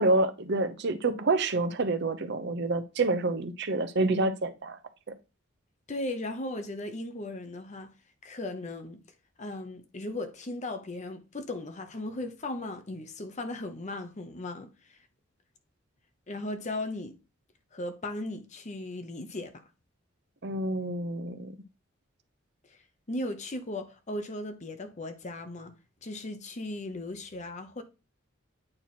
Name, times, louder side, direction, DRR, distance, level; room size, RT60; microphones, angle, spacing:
voice 1, 0.0-4.8 20.4-21.5, right 2 dB, 55° right, 0.7 m, -28 dB
voice 2, 5.9-7.9 8.2-9.0 9.4-15.0 16.3-17.2 17.7-19.6 22.7-22.8 23.1-25.7 26.0-27.8, left 2 dB, 35° left, 0.7 m, -37 dB
8.8 x 3.0 x 4.2 m
head